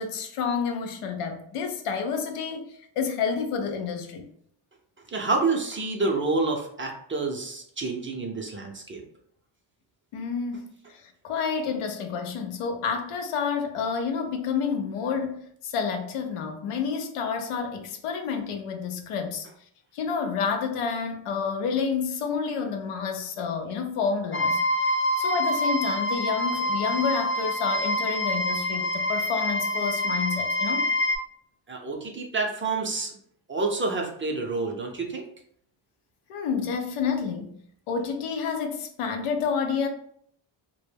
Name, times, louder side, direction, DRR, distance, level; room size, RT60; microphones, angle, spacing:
voice 1, 0.0-2.6 3.0-4.3 10.1-10.6 10.9-19.5 19.9-24.6 25.2-30.9 36.3-37.6 37.9-39.9, left 6 dB, 85° left, 0.6 m, -29 dB
voice 2, 5.1-9.0 31.7-33.2 33.5-35.3, right 3 dB, 25° right, 0.5 m, -28 dB
sound 1, 24.3-31.2, left 1 dB, 30° left, 0.4 m, -26 dB
2.1 x 2.1 x 3.2 m
cardioid pair, 80°, 50 cm